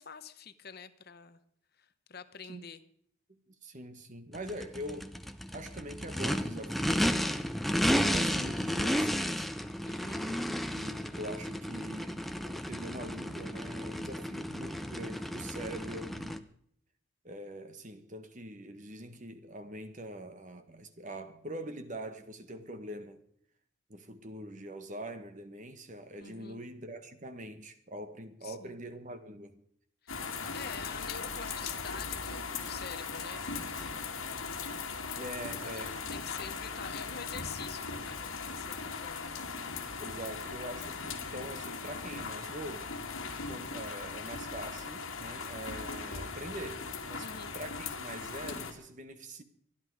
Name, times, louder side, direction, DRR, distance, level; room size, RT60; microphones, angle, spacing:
voice 1, 0.0-1.4 1.8-2.8 9.9-10.3 26.2-26.6 28.4-28.8 30.0-30.2 30.5-34.1 35.6-39.3 47.2-47.6, left 6 dB, 50° left, 0.9 m, -47 dB
voice 2, 3.5-5.2 5.5-7.5 8.0-9.6 10.2-16.4 17.2-23.2 23.9-29.6 35.2-35.9 40.0-42.9 43.5-47.3 47.5-49.4, right 1 dB, 35° right, 1.5 m, -43 dB
Race car auto racing / Idling / Accelerating revving vroom, 4.3-16.4, equal, ahead, 0.7 m, -33 dB
sound 1, 30.1-48.7, left 5 dB, 75° left, 2.5 m, -39 dB
24.0 x 10.5 x 4.9 m
head